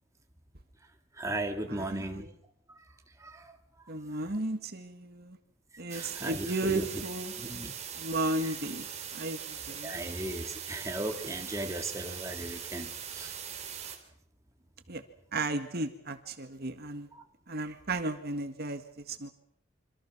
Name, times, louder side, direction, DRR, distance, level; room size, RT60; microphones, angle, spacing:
voice 1, 0.8-2.3 2.7-4.3 5.9-7.0 7.4-7.7 8.4-8.5 9.8-13.4 17.1-17.2 17.7-17.8, right 1 dB, 15° right, 3 dB, 2.2 m, -38 dB
voice 2, 1.7-2.2 3.9-5.4 5.8-7.3 8.0-8.9 9.1-10.0 14.9-15.0 15.3-17.1 17.5-19.3, right 2 dB, 50° right, 7 dB, 1.9 m, -34 dB
sound 1, 5.9-14.0, right 8 dB, 30° right, 3.7 m, -41 dB
27.0 x 26.0 x 6.2 m, 0.69 s
head